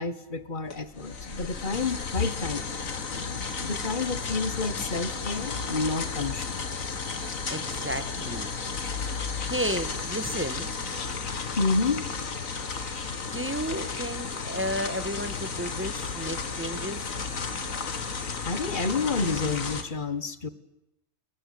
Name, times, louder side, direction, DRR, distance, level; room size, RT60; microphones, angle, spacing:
voice 1, 0.0-2.8 3.1-6.6 11.6-12.1 17.4-17.5 18.4-20.5, left 3 dB, 35° left, 13 dB, 1.5 m, -30 dB
sound 1, 0.7-19.8, left 5 dB, 70° left, 2.3 m, -33 dB
voice 2, 7.1-8.5 9.5-10.7 13.3-17.1, equal, 10° right, 10 dB, 1.5 m, -33 dB
29.5 x 20.5 x 8.7 m, 0.90 s
omnidirectional pair, 1.5 m